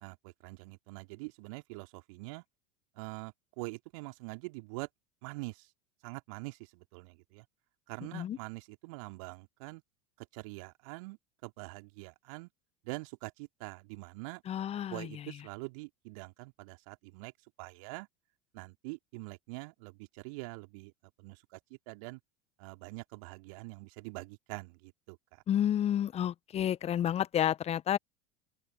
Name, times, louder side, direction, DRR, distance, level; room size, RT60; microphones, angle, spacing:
voice 1, 0.0-2.4 2.9-4.9 5.2-5.7 6.0-7.4 7.9-9.8 10.2-12.5 12.8-14.4 14.9-17.3 17.6-18.1 18.5-20.9 21.2-22.2 22.6-25.4, right 27 dB, 55° right, 3.2 m, -44 dB
voice 2, 14.5-15.1 25.5-28.0, left 10 dB, 30° left, 1.4 m, -30 dB
open air
figure-of-eight pair, 75°, 20 cm